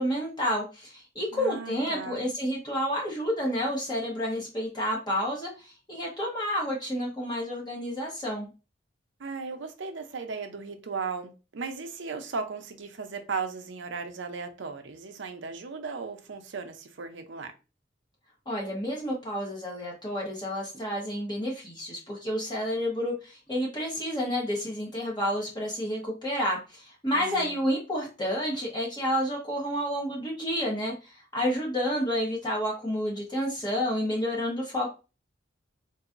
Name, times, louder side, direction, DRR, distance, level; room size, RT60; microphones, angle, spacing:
voice 1, 0.0-8.5 18.5-34.9, equal, 25° left, 1.1 m, -30 dB
voice 2, 1.3-2.2 9.2-17.5 27.1-27.6, right 4 dB, 70° right, 0.6 m, -36 dB
3.8 x 2.7 x 2.4 m
head